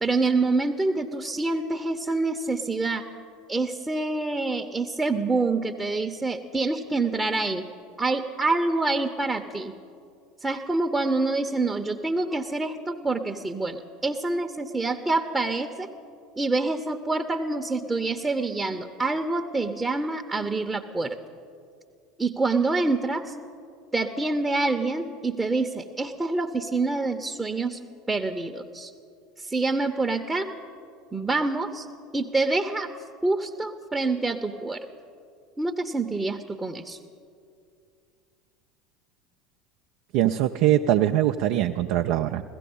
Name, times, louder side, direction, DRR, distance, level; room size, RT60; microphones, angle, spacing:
voice 1, 0.0-3.0 3.5-7.6 8.0-9.7 10.4-15.9 16.4-21.1 22.2-23.3 23.9-27.8 28.1-28.9 29.4-30.5 31.1-31.9 32.1-32.9 33.2-34.8 35.6-37.0, right 3 dB, 10° right, 6 dB, 0.8 m, -26 dB
voice 2, 40.1-42.4, right 12 dB, 60° right, 6 dB, 0.4 m, -22 dB
16.0 x 14.5 x 5.4 m, 2.4 s
figure-of-eight pair, 75°, 0 cm